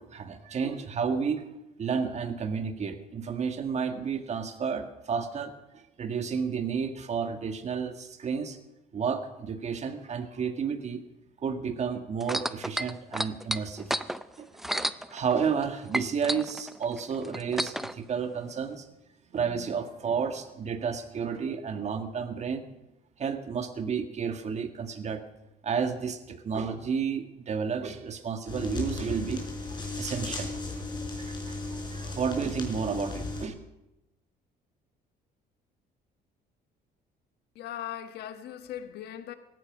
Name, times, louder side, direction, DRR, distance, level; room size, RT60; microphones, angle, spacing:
voice 1, 0.0-1.4 1.8-8.6 8.9-11.0 11.4-14.0 14.4-14.5 14.7-18.9 19.3-22.6 23.2-25.2 25.6-29.4 30.0-30.6 31.2-33.5, right 6 dB, 40° right, 1.7 m, -31 dB
sound 1, 12.2-15.7 15.9-17.9 18.7-18.8, equal, ahead, 0.5 m, -31 dB
sound 2, 28.5-33.4, left 3 dB, 25° left, 4.4 m, -36 dB
voice 2, 37.5-39.3, left 11 dB, 75° left, 1.4 m, -39 dB
18.0 x 14.5 x 5.1 m
cardioid pair, 110°, 17 cm